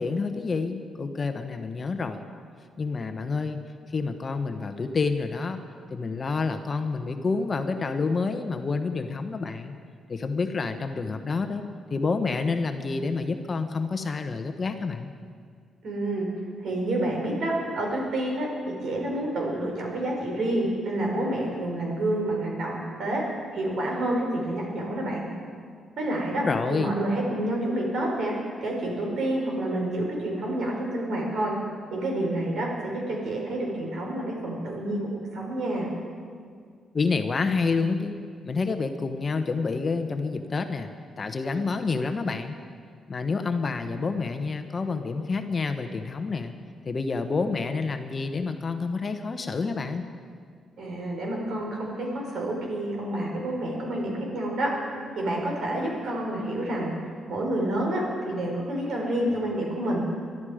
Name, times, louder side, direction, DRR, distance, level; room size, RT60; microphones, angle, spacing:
voice 1, 0.0-2.3 2.8-3.6 3.9-5.6 5.9-9.8 10.1-15.1 26.4-26.9 36.9-40.9 41.2-42.6 43.1-46.5 46.8-50.1, left 4 dB, 30° left, 7 dB, 0.9 m, -28 dB
voice 2, 15.8-16.3 16.6-23.2 23.5-25.2 26.0-26.4 26.7-28.3 28.6-31.5 31.9-35.9 50.8-54.7 55.1-56.9 57.3-60.0, right 1 dB, 65° right, -1 dB, 4.7 m, -28 dB
22.5 x 12.0 x 5.0 m, 2.1 s
cardioid pair, 130°, 0 cm